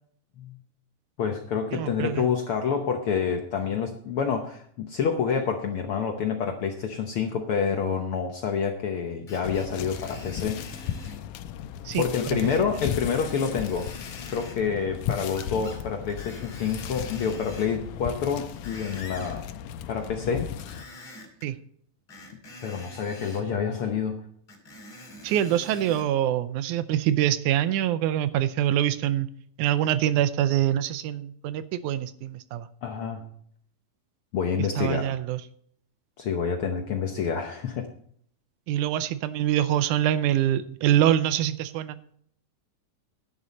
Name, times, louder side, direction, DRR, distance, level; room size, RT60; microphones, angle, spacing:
voice 1, 1.2-10.6 12.0-13.9 14.3-19.4 19.9-20.5 22.6-24.2 32.8-33.3 34.3-35.1 36.2-37.9, left 6 dB, 65° left, 4 dB, 1.4 m, -28 dB
voice 2, 1.7-2.3 11.9-12.1 12.3-12.4 21.4-21.6 25.2-29.3 29.6-32.7 34.8-35.4 38.7-42.0, right 11 dB, 80° right, 14 dB, 2.0 m, -25 dB
Screech, 9.3-11.2 12.2-12.6 12.9-14.6 15.3-15.8 16.1-17.8 18.3-19.4 20.5-21.5 22.1-23.5 24.5-26.1 26.7-26.8, left 1 dB, 35° left, 2.8 m, -45 dB
sound 1, 9.4-20.8, left 10 dB, 85° left, 2.1 m, -36 dB
11.0 x 10.0 x 4.1 m, 0.62 s
omnidirectional pair, 3.6 m